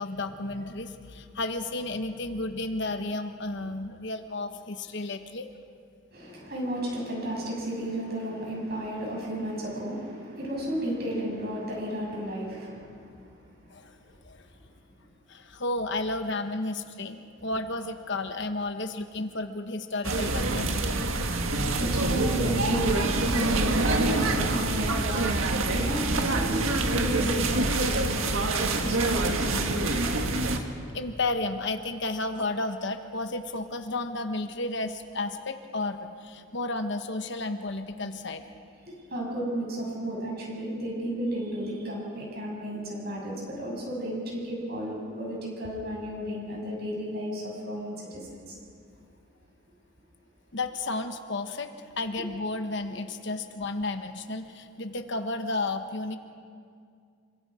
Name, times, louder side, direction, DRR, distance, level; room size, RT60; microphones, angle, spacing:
voice 1, 0.0-5.5 13.7-13.9 14.2-14.5 15.3-20.8 30.5-30.7 30.9-38.4 50.5-56.2, left 2 dB, 55° left, 7 dB, 1.2 m, -32 dB
voice 2, 6.1-13.4 21.8-22.9 23.1-25.3 25.7-28.0 28.8-29.8 38.9-48.6, equal, 45° right, -2 dB, 7.6 m, -33 dB
sound 1, 20.0-30.6, right 2 dB, 70° right, 1.8 m, -26 dB
27.5 x 24.5 x 5.0 m, 2.3 s
head